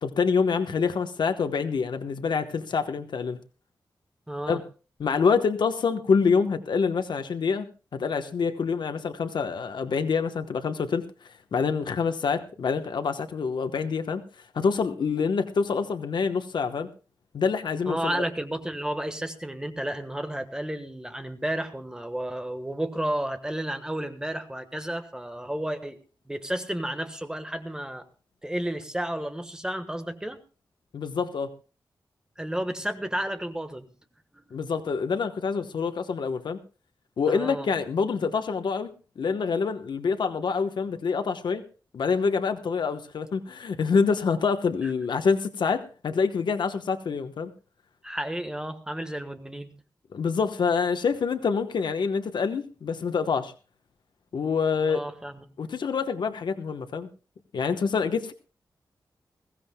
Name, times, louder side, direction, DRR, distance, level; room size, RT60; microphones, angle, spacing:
voice 1, 0.0-3.4 4.5-4.6 5.0-7.7 7.9-11.1 11.5-14.2 14.5-16.9 17.3-18.2 30.9-31.5 34.5-36.6 37.2-41.6 41.9-47.5 50.1-53.5 54.3-55.0 55.6-57.1 57.5-58.3, left 5 dB, 80° left, 8 dB, 1.0 m, -26 dB
voice 2, 4.3-4.6 17.9-26.0 26.3-28.0 28.4-30.4 32.4-33.8 34.6-34.7 37.3-37.7 44.8-44.9 48.0-49.7 54.8-55.4, right 1 dB, 10° right, 7 dB, 1.3 m, -32 dB
21.5 x 16.5 x 2.2 m, 0.34 s
wide cardioid pair, 140°, 8 cm